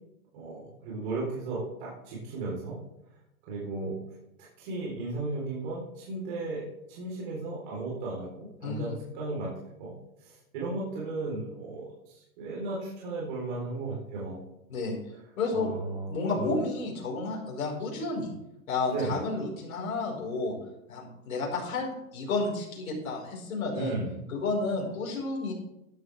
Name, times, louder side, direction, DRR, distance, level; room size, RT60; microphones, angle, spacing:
voice 1, 0.3-2.8 3.5-4.0 4.6-6.6 6.9-9.9 10.2-14.4 15.5-16.5 18.9-19.2 23.7-24.2, right 3 dB, 35° right, -5 dB, 4.0 m, -35 dB
voice 2, 8.6-8.9 14.7-15.0 15.4-15.7 16.1-18.3 18.7-20.5 20.9-24.0 24.3-25.5, left 3 dB, 65° left, -2 dB, 5.0 m, -31 dB
13.5 x 11.5 x 3.5 m, 0.87 s
hypercardioid pair, 170°, 44 cm